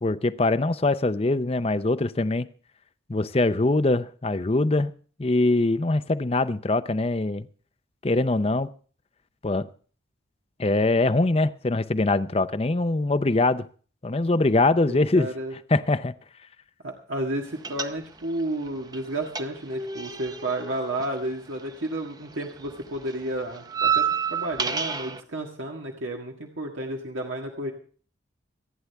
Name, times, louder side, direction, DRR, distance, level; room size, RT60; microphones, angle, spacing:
voice 1, 0.0-2.5 3.1-4.9 5.2-7.5 8.0-8.7 9.4-9.7 10.6-13.7 14.0-15.3 15.7-16.1, left 2 dB, 30° left, 0.6 m, -23 dB
voice 2, 14.9-15.5 16.8-27.7, right 1 dB, 85° right, 1.8 m, -32 dB
sound 1, 17.6-18.4 18.7-22.1 22.3-25.2, right 7 dB, 20° right, 0.6 m, -29 dB
27.0 x 9.6 x 3.4 m
head